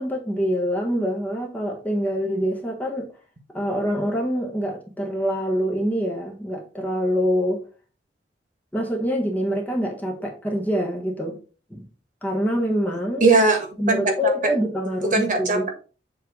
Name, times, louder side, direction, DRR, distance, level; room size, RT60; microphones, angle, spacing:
voice 1, 0.0-3.1 3.5-7.6 8.7-11.4 11.7-11.8 12.2-13.2 13.8-15.7, equal, 10° left, 1.3 m, -25 dB
voice 2, 13.2-14.5 15.1-15.7, right 3 dB, 45° right, 1.7 m, -20 dB
7.4 x 3.4 x 4.7 m
head